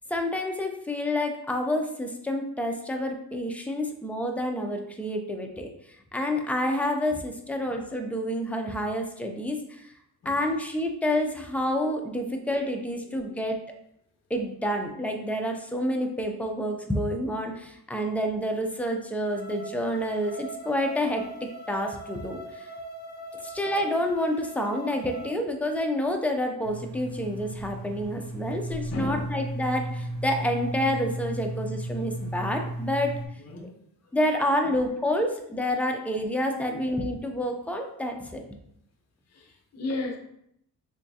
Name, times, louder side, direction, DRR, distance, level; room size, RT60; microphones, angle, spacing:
voice 1, 0.1-5.7 6.1-9.9 10.3-13.6 14.3-22.7 23.4-33.2 34.1-38.6, left 1 dB, 5° left, 3 dB, 0.4 m, -28 dB
voice 2, 13.0-13.4 28.6-28.7 28.9-29.3 33.4-33.7 34.0-34.1 34.6-34.7 36.7-36.8 39.3-40.2, left 2 dB, 40° left, 2 dB, 0.7 m, -36 dB
sound 1, 19.3-25.3, right 1 dB, 20° left, 1.4 m, -41 dB
sound 2, 26.6-33.3, right 1 dB, 50° right, 0.9 m, -34 dB
3.5 x 3.0 x 2.7 m, 0.75 s
cardioid pair, 95°, 40 cm